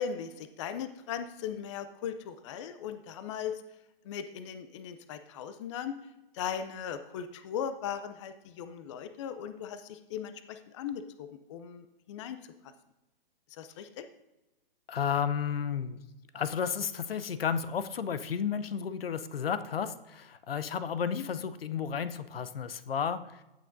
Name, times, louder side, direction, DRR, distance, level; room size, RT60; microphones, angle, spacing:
voice 1, 0.0-3.6 4.1-6.0 6.3-12.4 13.5-14.0 21.1-21.3, left 8 dB, 30° left, 10 dB, 0.5 m, -38 dB
voice 2, 14.9-16.0 16.3-23.4, left 7 dB, 80° left, 13 dB, 0.7 m, -32 dB
15.5 x 6.2 x 2.6 m, 0.99 s
hypercardioid pair, 140°, 29 cm